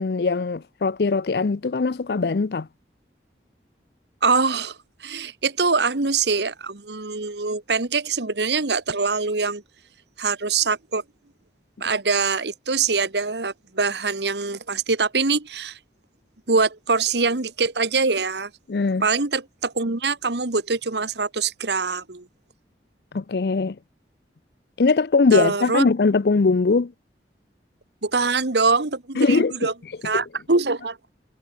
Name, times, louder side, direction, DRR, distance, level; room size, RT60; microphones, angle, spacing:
voice 1, 0.0-2.7 18.7-19.1 23.1-23.8 24.8-26.9 29.2-29.5 30.1-30.2, left 4 dB, 65° left, 0.5 m, -21 dB
voice 2, 4.2-9.6 10.2-11.0 11.8-15.8 16.5-18.5 19.0-22.3 25.3-25.9 28.0-29.7 30.0-31.0, right 4 dB, 75° right, 1.6 m, -23 dB
head